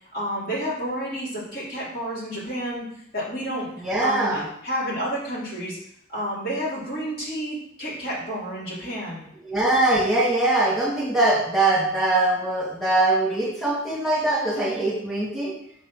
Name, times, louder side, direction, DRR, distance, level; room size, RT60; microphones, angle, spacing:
voice 1, 0.1-3.7 4.0-5.8 6.1-9.3, equal, 55° left, -7 dB, 3.1 m, -30 dB
voice 2, 3.8-4.4 9.5-15.5, right 2 dB, ahead, -8 dB, 2.4 m, -22 dB
6.3 x 4.3 x 5.8 m, 0.71 s
head